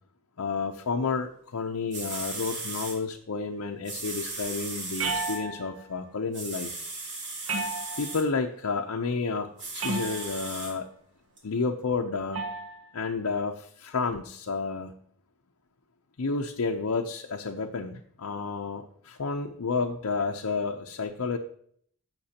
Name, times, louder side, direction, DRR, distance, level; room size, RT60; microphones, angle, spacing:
voice 1, 0.4-6.7 8.0-10.9 11.4-12.4 12.9-14.9 16.2-21.4, left 4 dB, 85° left, 2 dB, 0.6 m, -31 dB
sound 1, 1.6-1.7 1.9-3.0 3.8-5.4 6.3-8.2 9.6-10.7 11.4-11.5, right 3 dB, 55° right, 3.0 m, -37 dB
sound 2, 5.0-5.8 7.5-8.3 9.8-10.5 12.3-12.8, right 3 dB, 70° right, 1.3 m, -32 dB
15.5 x 6.0 x 2.9 m, 0.62 s
head